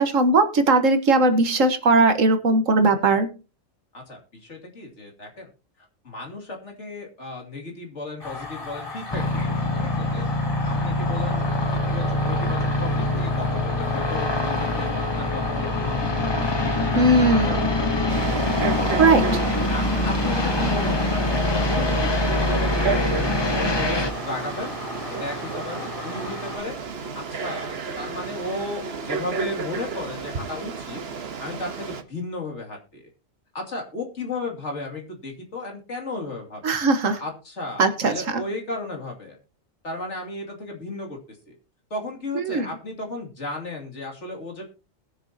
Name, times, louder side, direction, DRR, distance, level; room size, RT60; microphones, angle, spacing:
voice 1, 0.0-3.3 17.0-17.7 19.0-19.2 36.6-37.2 37.8-38.4 42.4-42.7, right 3 dB, 75° right, 8 dB, 1.7 m, -19 dB
voice 2, 3.9-5.5 6.0-10.3 10.6-11.4 11.7-18.2 18.8-18.9 19.7-24.7 25.2-26.7 27.1-31.0 31.4-33.1 33.5-36.7 37.2-39.4 39.8-41.5 41.9-44.7, left 2 dB, 60° left, 1 dB, 2.9 m, -34 dB
sound 1, 8.2-26.6, left 4 dB, 40° left, 3.1 m, -37 dB
sound 2, 9.1-24.1, left 1 dB, 20° left, 1.0 m, -24 dB
Frog, 18.1-32.0, right 5 dB, 50° right, 1.3 m, -32 dB
20.5 x 6.9 x 2.8 m, 0.31 s
omnidirectional pair, 1.4 m